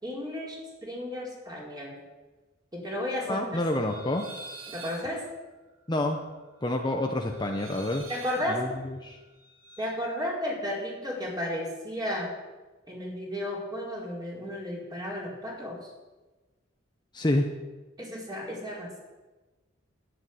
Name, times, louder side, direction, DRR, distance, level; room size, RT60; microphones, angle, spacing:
voice 1, 0.0-2.0 2.7-3.4 3.8-3.9 4.7-5.2 8.1-8.6 9.8-12.3 12.9-15.9 18.0-19.0, left 1 dB, 20° right, -3 dB, 4.3 m, -33 dB
voice 2, 3.3-4.3 5.9-6.2 6.6-8.0 8.5-9.2 17.1-17.5, left 1 dB, 20° left, 2 dB, 1.0 m, -28 dB
sound 1, 3.6-9.9, right 3 dB, 80° right, 2.2 m, -48 dB
11.0 x 11.0 x 8.0 m, 1.2 s
head